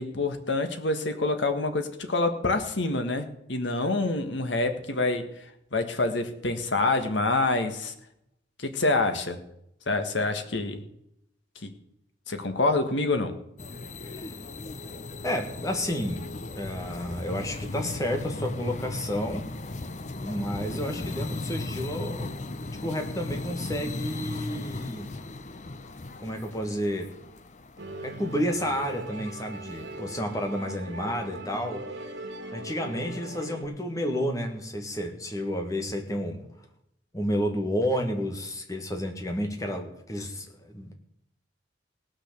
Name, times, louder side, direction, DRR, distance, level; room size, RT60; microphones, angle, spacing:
voice 1, 0.0-7.9 8.6-9.4 9.9-10.8 11.6-11.7 12.3-13.3, left 2 dB, 75° left, 7 dB, 1.6 m, -27 dB
sound 1, 13.6-28.9, left 2 dB, 40° left, 0.7 m, -37 dB
voice 2, 14.0-14.3 15.2-16.3 16.5-19.4 20.2-22.4 22.8-25.1 26.2-27.1 28.0-31.8 32.5-36.4 37.1-40.9, equal, 20° left, 4 dB, 1.7 m, -31 dB
Musical instrument, 27.8-33.7, right 1 dB, 75° right, 2.2 m, -40 dB
18.0 x 6.3 x 6.8 m, 0.77 s
head